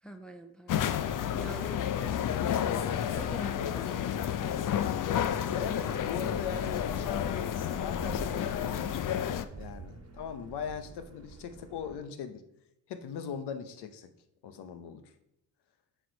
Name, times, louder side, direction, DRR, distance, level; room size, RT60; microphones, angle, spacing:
voice 1, 0.0-1.8 3.0-4.1 4.4-4.8, right 1 dB, ahead, 5 dB, 0.7 m, -45 dB
sound 1, 0.7-9.4, left 9 dB, 50° left, 0.6 m, -31 dB
voice 2, 2.3-3.1 5.5-9.2 9.5-12.4 12.9-14.1 14.4-15.1, left 7 dB, 75° left, 9 dB, 0.9 m, -40 dB
sound 2, 5.4-12.0, right 4 dB, 35° right, 1.2 m, -47 dB
7.3 x 4.6 x 5.3 m, 0.82 s
supercardioid pair, 60°, 40 cm